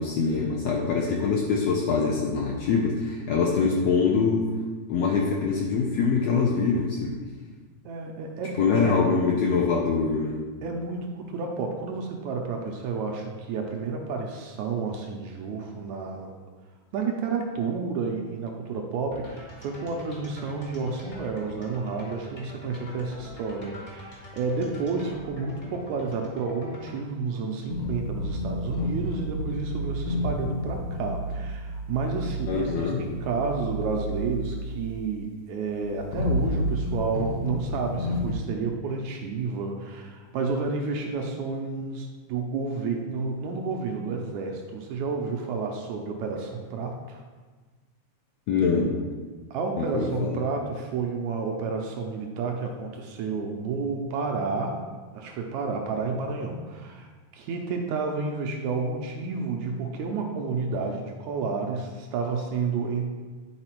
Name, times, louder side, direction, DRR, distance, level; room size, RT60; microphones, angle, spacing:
voice 1, 0.0-4.5 4.9-7.2 8.6-10.4 32.5-33.0 48.5-49.0 49.8-50.4, left 5 dB, 75° left, -1 dB, 1.5 m, -24 dB
voice 2, 7.9-8.7 10.6-16.3 16.9-47.2 49.5-54.8 55.1-57.1 57.3-63.1, right 4 dB, 80° right, 2 dB, 1.8 m, -30 dB
sound 1, 19.1-27.0, equal, 40° left, 0.7 m, -45 dB
sound 2, 27.7-35.1 35.8-38.3, equal, 60° left, 1.9 m, -30 dB
9.6 x 4.1 x 4.5 m, 1.4 s
omnidirectional pair, 3.7 m